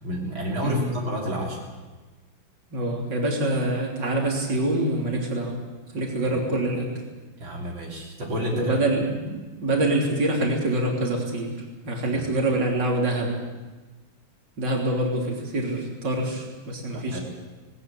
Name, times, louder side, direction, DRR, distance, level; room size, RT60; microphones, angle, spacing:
voice 1, 0.0-1.7 6.2-6.4 7.4-8.8 12.1-12.3 16.9-17.2, equal, 80° right, -2 dB, 3.9 m, -30 dB
voice 2, 0.6-0.9 2.7-5.6 5.9-6.9 8.5-11.5 11.8-13.4 14.6-17.2, right 1 dB, 60° right, -1 dB, 4.0 m, -25 dB
19.5 x 19.0 x 8.5 m, 1.3 s
omnidirectional pair, 2.1 m